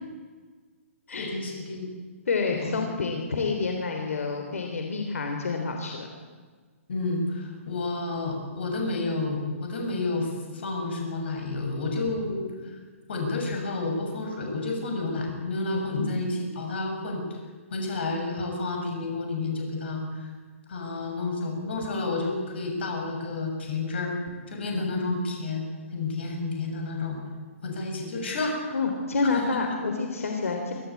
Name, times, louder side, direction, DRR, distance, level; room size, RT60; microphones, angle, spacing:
voice 1, 1.2-1.9 2.5-2.9 6.9-12.5 13.1-17.3 17.7-20.3 20.7-24.2 24.5-25.6 25.9-27.2 27.6-28.6 29.5-29.6, left 3 dB, 50° left, 2 dB, 7.0 m, -30 dB
voice 2, 2.3-6.1 15.7-16.1 24.7-25.1 28.7-30.7, left 4 dB, 75° left, 3 dB, 3.6 m, -28 dB
25.0 x 15.5 x 8.6 m, 1.5 s
hypercardioid pair, 175°, 8 cm